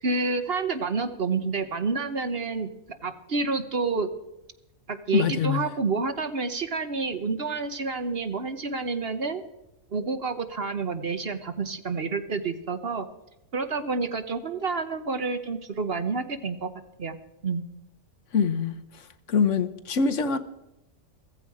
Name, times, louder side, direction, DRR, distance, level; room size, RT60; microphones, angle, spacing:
voice 1, 0.0-2.7 3.0-4.1 4.9-9.4 9.9-13.1 13.5-16.7 17.0-17.2 17.4-17.6, right 4 dB, 50° right, 1.1 m, -29 dB
voice 2, 5.1-5.7 18.3-19.0 19.3-20.4, left 6 dB, 60° left, 1.2 m, -24 dB
15.5 x 15.0 x 4.8 m
omnidirectional pair, 1.5 m